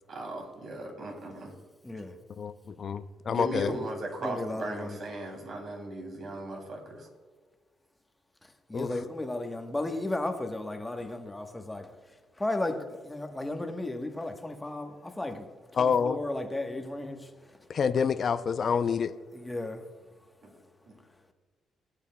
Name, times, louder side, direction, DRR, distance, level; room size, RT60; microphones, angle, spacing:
voice 1, 0.1-1.5 3.3-7.1 20.4-20.5 20.9-21.0, right 1 dB, 55° right, 2.8 m, -37 dB
voice 2, 1.8-2.2 3.5-3.8 4.2-5.0 8.4-17.7 19.3-20.6 21.0-21.2, left 2 dB, 10° left, 1.1 m, -35 dB
voice 3, 2.4-3.7 8.7-8.9 15.8-16.2 17.7-19.1, left 6 dB, 50° left, 0.5 m, -27 dB
17.5 x 8.2 x 2.2 m
cardioid pair, 90°, 0 cm